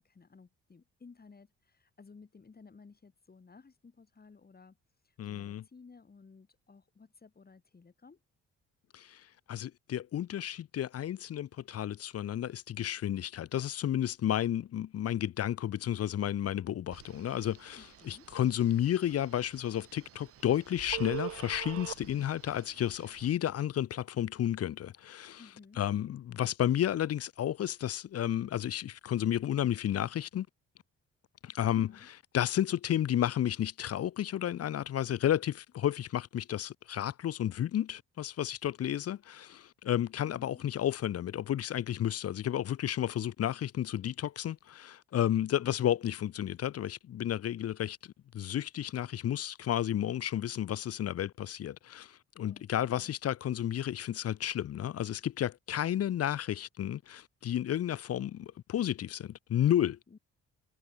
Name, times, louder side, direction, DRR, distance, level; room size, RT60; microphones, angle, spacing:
voice 1, 0.0-4.8 5.0-8.2 17.8-18.3 25.4-25.8 31.6-32.1 40.2-40.7 52.4-53.1 60.1-60.2, left 4 dB, 30° left, 7.1 m, -56 dB
voice 2, 5.2-5.6 8.9-25.4 25.8-30.5 31.4-48.0 48.3-60.0, left 11 dB, 50° left, 0.7 m, -32 dB
Telephone, 16.9-23.3, right 11 dB, 50° right, 0.7 m, -45 dB
cardioid pair, 90°, 30 cm